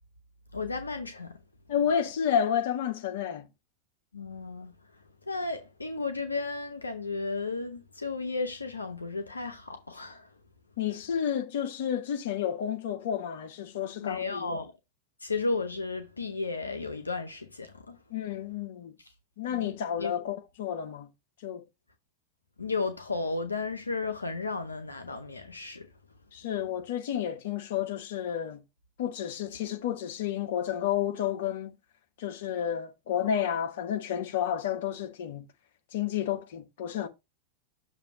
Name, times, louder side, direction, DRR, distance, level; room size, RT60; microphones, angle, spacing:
voice 1, 0.5-1.4 4.1-4.7 5.3-10.3 14.0-14.7 15.2-18.0 19.5-20.1 22.6-25.9, left 3 dB, 80° left, 0.7 m, -34 dB
voice 2, 1.7-3.5 10.8-14.6 18.1-19.0 19.4-21.1 21.4-21.6 26.3-28.6 29.0-31.8 32.2-35.5 35.9-37.1, left 9 dB, 55° left, 0.9 m, -31 dB
6.8 x 2.7 x 5.7 m
figure-of-eight pair, 90°, 0 cm